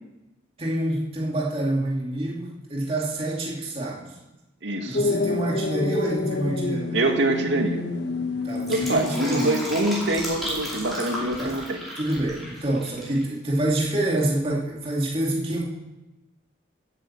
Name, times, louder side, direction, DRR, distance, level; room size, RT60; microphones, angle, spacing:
voice 1, 0.6-4.1 4.9-7.1 8.4-9.5 11.4-11.6 11.9-15.6, right 1 dB, 30° right, -3 dB, 2.6 m, -27 dB
voice 2, 4.6-5.0 6.9-7.8 8.7-11.8, right 1 dB, 80° right, 3 dB, 2.1 m, -25 dB
sound 1, 4.9-11.5, left 3 dB, 65° left, 1.3 m, -30 dB
Fill (with liquid), 8.4-13.2 13.5-13.6, equal, ahead, 5.2 m, -34 dB
15.5 x 9.1 x 7.5 m, 1.0 s
head